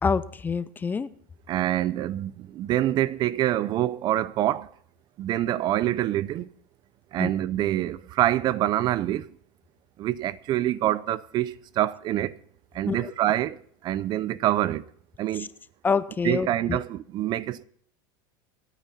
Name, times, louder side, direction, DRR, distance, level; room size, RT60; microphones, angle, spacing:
voice 1, 0.0-1.1 7.2-7.3 12.9-13.1 15.4-15.5 15.8-16.8, left 5 dB, 15° left, 0.6 m, -27 dB
voice 2, 1.5-4.7 5.2-6.5 7.1-9.3 10.0-12.4 12.7-14.9 15.2-15.5 16.2-17.6, right 13 dB, 40° right, 0.5 m, -26 dB
26.5 x 9.1 x 4.2 m
supercardioid pair, 120°, 11 cm